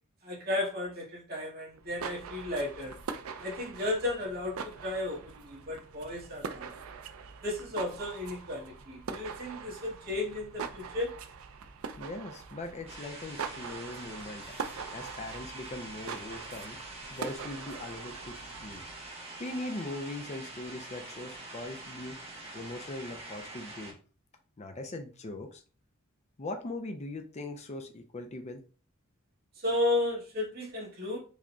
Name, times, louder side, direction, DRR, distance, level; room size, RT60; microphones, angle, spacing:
voice 1, 0.2-3.0 3.4-6.7 7.4-11.1 29.6-31.2, left 2 dB, 50° right, -5 dB, 1.7 m, -34 dB
sound 1, 1.7-19.1, right 6 dB, 75° right, 0.4 m, -43 dB
voice 2, 12.0-14.4 14.9-16.8 17.1-18.8 19.4-22.2 22.5-24.0 24.6-25.6 26.4-28.6, left 2 dB, 30° left, 5 dB, 0.5 m, -40 dB
sound 2, 12.9-23.9, right 2 dB, 30° right, 1.1 m, -45 dB
4.9 x 2.8 x 2.3 m, 0.37 s
head